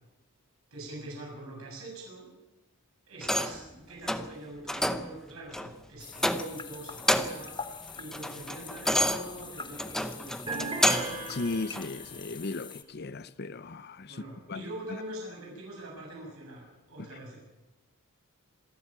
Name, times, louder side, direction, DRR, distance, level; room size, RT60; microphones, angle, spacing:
voice 1, 0.7-2.3 3.1-7.5 8.0-11.0 14.1-17.4, right 1 dB, 75° right, 7.6 m, -43 dB
sound 1, 3.2-3.7 4.1-4.3 4.7-5.1 5.5-5.7 6.2-6.7 6.9-7.5 7.9-11.2 11.7-11.9, equal, ahead, 0.8 m, -29 dB
sound 2, 6.0-12.8, left 5 dB, 20° left, 1.1 m, -44 dB
sound 3, 10.5-12.2, right 3 dB, 25° right, 4.4 m, -37 dB
voice 2, 11.2-14.2 14.5-15.0, left 3 dB, 45° left, 0.6 m, -36 dB
26.5 x 12.0 x 8.9 m
head